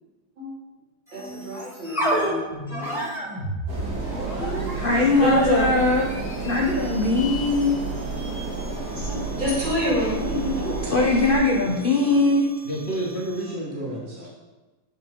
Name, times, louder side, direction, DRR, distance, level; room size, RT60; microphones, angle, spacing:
sound 1, 1.1-13.6, right 1 dB, ahead, 2.0 m, -34 dB
voice 1, 1.1-2.4 4.4-5.7 8.9-10.9 11.6-12.3 13.6-14.3, equal, 75° right, -6 dB, 3.2 m, -28 dB
sound 2, 3.7-11.4, right 4 dB, 60° right, 2.3 m, -31 dB
voice 2, 3.8-4.6 12.6-14.0, right 1 dB, 40° left, -4 dB, 1.5 m, -31 dB
voice 3, 4.7-6.1 6.4-7.8 10.9-12.5, left 3 dB, 70° left, -1 dB, 0.5 m, -21 dB
7.4 x 5.6 x 3.7 m, 1.2 s
omnidirectional pair, 2.0 m